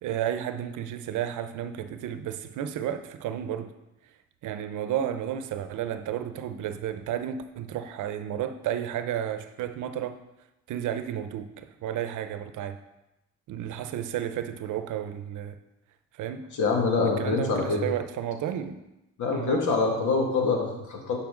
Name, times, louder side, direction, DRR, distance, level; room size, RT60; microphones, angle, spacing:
voice 1, 0.0-3.7 4.4-10.2 10.7-12.8 13.5-15.6 16.1-16.5 17.0-18.8 19.3-19.7, right 10 dB, 80° right, 10 dB, 0.7 m, -32 dB
voice 2, 16.6-17.8 19.2-21.2, left 4 dB, 75° left, 0 dB, 2.1 m, -25 dB
10.5 x 5.5 x 3.8 m, 0.94 s
cardioid pair, 90°, 30 cm